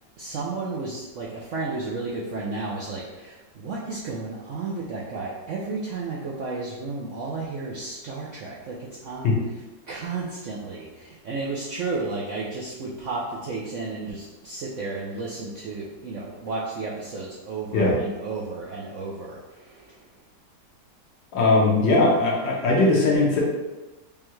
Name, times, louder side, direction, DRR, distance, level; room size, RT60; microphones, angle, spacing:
voice 1, 0.2-9.6 9.9-19.8, right 3 dB, 75° right, -5 dB, 0.7 m, -33 dB
voice 2, 21.3-23.4, left 2 dB, 85° left, -3 dB, 1.7 m, -19 dB
5.2 x 2.3 x 3.0 m, 1.1 s
omnidirectional pair, 1.9 m